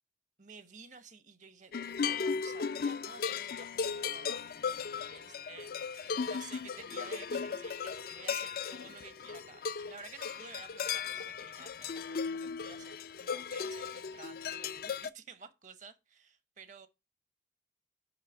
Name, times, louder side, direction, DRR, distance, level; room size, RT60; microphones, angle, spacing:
voice 1, 0.4-16.9, right 5 dB, 45° right, 1.0 m, -53 dB
sound 1, 1.7-15.1, left 6 dB, 55° left, 0.4 m, -36 dB
6.3 x 5.8 x 6.1 m
head